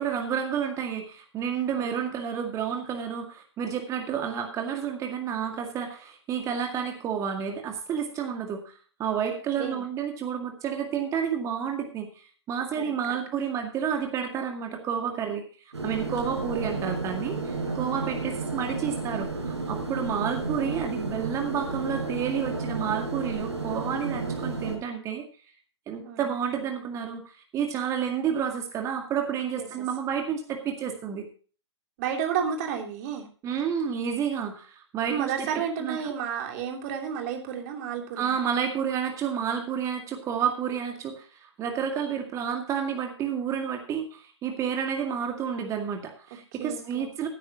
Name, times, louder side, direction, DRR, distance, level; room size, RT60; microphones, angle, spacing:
voice 1, 0.0-8.7 9.0-12.1 12.5-15.4 15.8-25.3 25.9-27.2 27.5-31.3 33.4-35.5 35.8-36.1 38.2-41.3 41.6-47.3, right 7 dB, 20° right, 4 dB, 2.0 m, -30 dB
sound 1, 15.7-24.8, right 3 dB, 80° right, 4.6 m, -32 dB
voice 2, 17.6-18.1 26.0-26.2 29.5-29.8 32.0-33.3 35.1-38.3 46.6-47.1, right 7 dB, 35° right, 4 dB, 3.1 m, -32 dB
16.5 x 10.0 x 2.9 m, 0.39 s
figure-of-eight pair, 120°, 15 cm